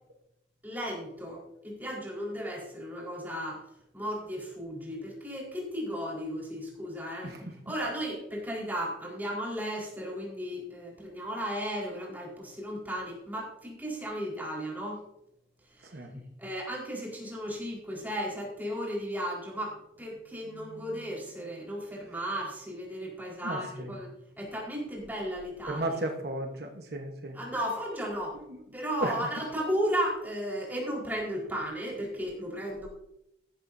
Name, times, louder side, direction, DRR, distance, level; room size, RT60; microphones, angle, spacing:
voice 1, 0.6-3.6 3.9-15.0 15.8-24.1 24.4-26.0 27.3-28.4 28.7-32.9, equal, 10° right, -4 dB, 4.5 m, -35 dB
voice 2, 23.4-23.9 25.7-27.4 28.3-28.6 29.0-29.1, right 1 dB, 60° right, 3 dB, 1.2 m, -34 dB
14.5 x 12.5 x 2.7 m, 0.81 s
head